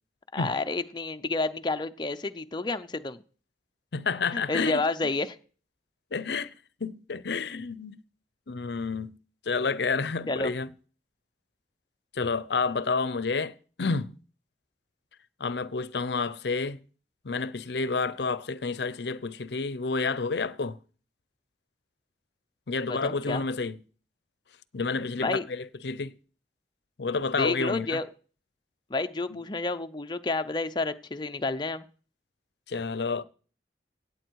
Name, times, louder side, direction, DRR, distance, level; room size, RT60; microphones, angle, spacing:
voice 1, 0.3-3.2 4.3-5.4 10.3-10.5 22.9-23.4 25.2-25.4 27.4-28.1 28.9-31.8, left 3 dB, 25° left, 0.6 m, -30 dB
voice 2, 3.9-4.8 6.1-6.5 6.8-8.0 8.5-9.2 9.5-10.7 12.1-14.2 15.4-16.8 17.2-20.8 22.7-23.8 24.7-26.1 27.0-28.0 29.3-29.4 32.7-33.2, left 4 dB, 70° left, 0.6 m, -30 dB
17.0 x 8.4 x 4.7 m
head